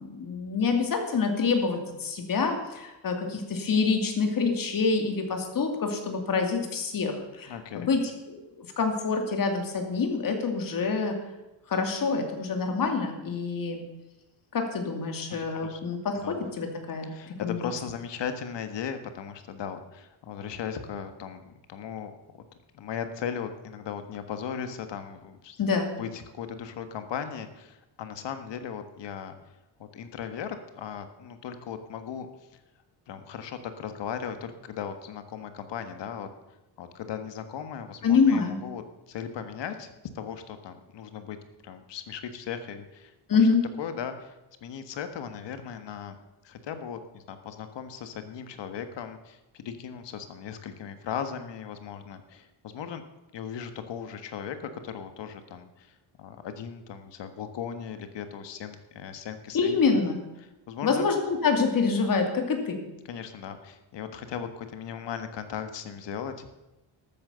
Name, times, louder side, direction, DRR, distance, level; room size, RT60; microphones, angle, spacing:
voice 1, 0.0-8.0 8.3-11.2 11.7-13.8 14.5-17.6 25.6-25.9 38.0-38.6 43.3-43.6 59.5-60.2 60.8-62.8, left 4 dB, 45° left, 4 dB, 2.6 m, -26 dB
voice 2, 7.5-7.9 15.6-15.8 16.2-16.3 17.1-22.1 22.7-25.6 26.0-29.3 29.9-32.3 33.1-36.3 36.8-41.4 41.6-43.1 43.8-44.3 44.6-46.2 46.4-53.0 53.3-54.6 54.8-55.9 56.2-60.0 60.7-61.0 63.1-66.5, left 7 dB, 65° left, 9 dB, 1.6 m, -37 dB
13.0 x 9.1 x 6.9 m, 1.0 s
cardioid pair, 145°, 46 cm